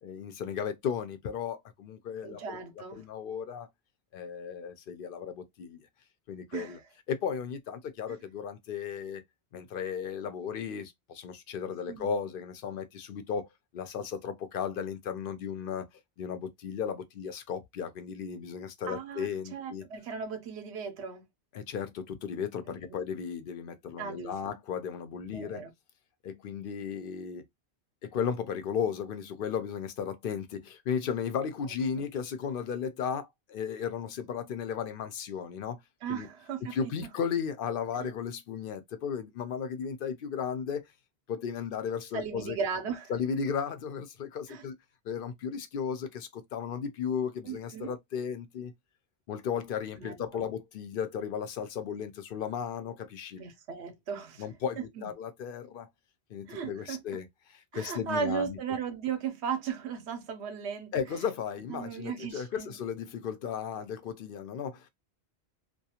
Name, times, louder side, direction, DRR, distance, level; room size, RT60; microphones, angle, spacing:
voice 1, 0.0-2.4 2.8-3.7 4.1-5.9 6.3-6.8 7.1-9.2 9.5-13.5 13.7-15.8 16.2-19.8 21.5-25.7 26.2-27.5 28.0-35.8 36.1-36.3 36.6-40.9 41.3-42.6 43.1-44.7 45.0-48.7 49.3-53.4 54.4-55.9 56.3-58.6 60.9-64.9, left 7 dB, 65° left, 0.7 m, -35 dB
voice 2, 2.2-3.0 6.5-6.8 8.1-8.2 11.9-12.1 18.8-21.2 22.7-23.0 24.0-24.3 25.3-25.7 36.0-36.9 38.0-38.1 42.1-43.1 44.5-44.6 47.4-47.9 50.0-50.5 53.4-54.5 55.0-55.1 56.5-57.0 57.7-60.9 61.7-62.8, right 6 dB, 85° right, 1.0 m, -36 dB
2.3 x 2.3 x 2.8 m
omnidirectional pair, 1.1 m